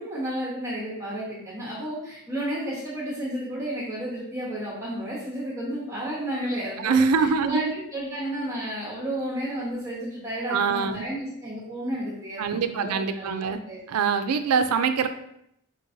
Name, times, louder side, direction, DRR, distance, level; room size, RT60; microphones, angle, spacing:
voice 1, 0.0-13.8, right 1 dB, 15° right, -8 dB, 1.0 m, -32 dB
voice 2, 6.8-7.7 10.5-11.1 12.4-13.6 13.9-15.1, right 5 dB, 80° right, 9 dB, 0.4 m, -24 dB
5.5 x 3.0 x 2.6 m, 0.75 s
head